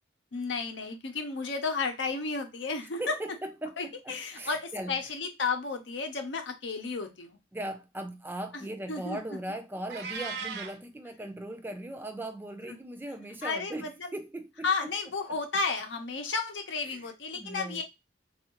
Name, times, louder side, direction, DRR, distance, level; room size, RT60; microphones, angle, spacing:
voice 1, 0.3-3.0 3.8-7.4 8.5-9.2 12.7-12.8 13.4-14.1 14.6-17.8, left 4 dB, 70° left, 0.7 m, -33 dB
voice 2, 3.0-5.0 7.5-14.7 16.9-17.8, right 1 dB, 10° right, 0.3 m, -39 dB
Meow, 9.9-10.8, right 5 dB, 60° right, 0.6 m, -36 dB
3.5 x 2.4 x 2.9 m
head